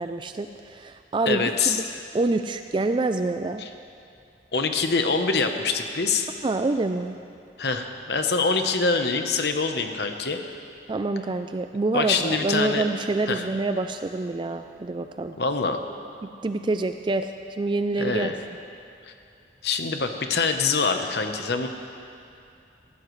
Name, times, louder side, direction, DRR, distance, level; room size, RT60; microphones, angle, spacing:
voice 1, 0.0-1.8 2.1-3.6 6.4-7.2 10.9-15.3 16.2-18.3, right 2 dB, 25° right, 8 dB, 0.3 m, -27 dB
voice 2, 1.3-1.8 3.6-3.7 4.5-6.3 7.6-10.4 11.9-12.8 13.3-13.5 15.4-15.8 18.0-18.4 19.1-19.2 19.6-21.7, left 4 dB, 65° left, 6 dB, 0.9 m, -24 dB
20.0 x 15.5 x 3.2 m, 2.5 s
head